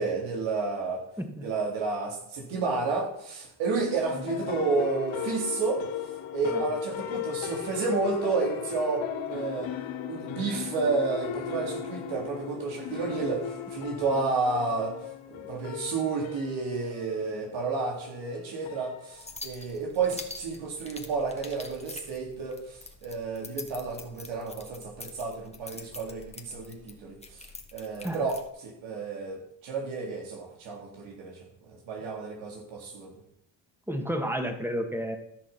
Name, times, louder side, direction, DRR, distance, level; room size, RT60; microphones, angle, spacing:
voice 1, 0.0-1.0 1.4-5.8 6.3-9.7 10.1-14.9 15.3-33.1, right 4 dB, 90° right, 0 dB, 3.3 m, -31 dB
sound 1, 3.8-19.4, left 9 dB, 85° left, 1.4 m, -37 dB
sound 2, 19.1-28.5, left 2 dB, 15° left, 1.7 m, -45 dB
voice 2, 33.9-35.2, equal, 5° right, 4 dB, 2.2 m, -31 dB
14.0 x 6.0 x 5.9 m, 0.75 s
cardioid pair, 75°, 45 cm